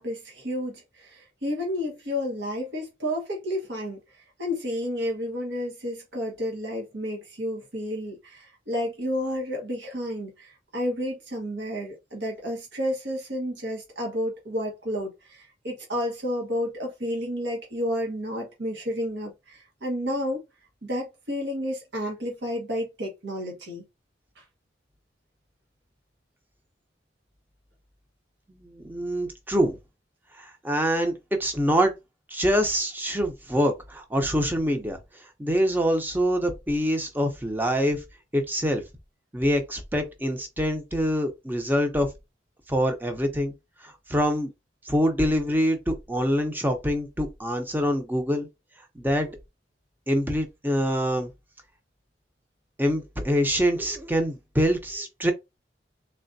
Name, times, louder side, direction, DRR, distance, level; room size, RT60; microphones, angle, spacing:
voice 1, 0.0-4.0 4.4-20.4 20.8-23.9 24.4-24.5, equal, 75° right, 1.4 m, -31 dB
voice 2, 28.5-29.8 30.4-31.1 31.4-31.9 32.3-35.0 35.4-38.0 38.3-38.8 39.3-42.1 42.7-43.5 43.8-44.5 44.8-48.5 48.9-49.4 50.1-51.3 52.8-55.3, equal, 10° right, 0.7 m, -25 dB
3.7 x 3.3 x 2.6 m
head